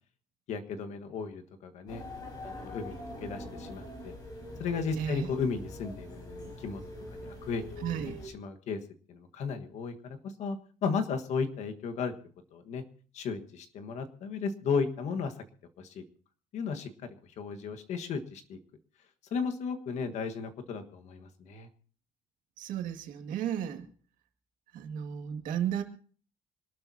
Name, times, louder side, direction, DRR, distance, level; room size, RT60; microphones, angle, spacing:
voice 1, 0.5-2.0 2.4-4.1 4.6-7.6 8.2-8.8 9.1-12.1 12.5-12.8 13.1-15.3 15.8-16.0 16.5-18.6 19.3-21.7, left 5 dB, 55° left, 7 dB, 1.6 m, -35 dB
sound 1, 1.9-8.3, left 1 dB, 30° left, 4.9 m, -43 dB
voice 2, 5.0-5.3 7.8-8.2 22.6-23.9 24.7-25.8, right 9 dB, 75° right, 5 dB, 2.1 m, -33 dB
25.5 x 12.5 x 2.8 m, 0.43 s
cardioid pair, 175°, 14 cm